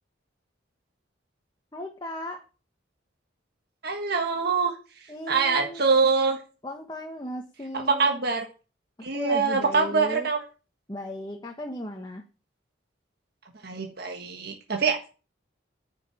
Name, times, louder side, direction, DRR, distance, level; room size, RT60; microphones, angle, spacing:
voice 1, 1.7-2.4 5.1-5.8 6.6-8.2 9.1-10.3 10.9-12.2, left 1 dB, 20° left, 2 dB, 1.3 m, -36 dB
voice 2, 3.8-4.7 5.3-6.4 7.7-8.4 9.0-10.4 13.6-15.1, right 4 dB, 55° right, 3 dB, 1.5 m, -24 dB
9.5 x 6.3 x 8.6 m, 0.35 s
head